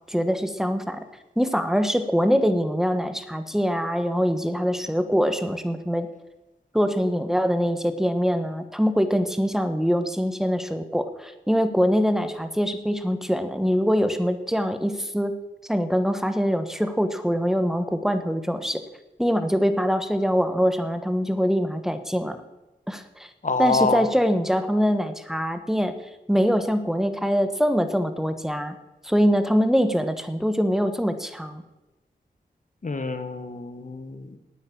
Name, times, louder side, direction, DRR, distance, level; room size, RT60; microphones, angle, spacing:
voice 1, 0.1-1.0 1.4-6.1 6.7-15.3 15.7-18.8 19.2-22.4 22.9-23.3 23.6-25.9 26.3-28.7 29.0-31.6, equal, ahead, 9 dB, 1.3 m, -23 dB
voice 2, 23.4-24.1 32.8-34.4, left 3 dB, 50° left, 9 dB, 1.5 m, -26 dB
9.2 x 9.1 x 8.6 m, 1.1 s
cardioid pair, 55°, 17 cm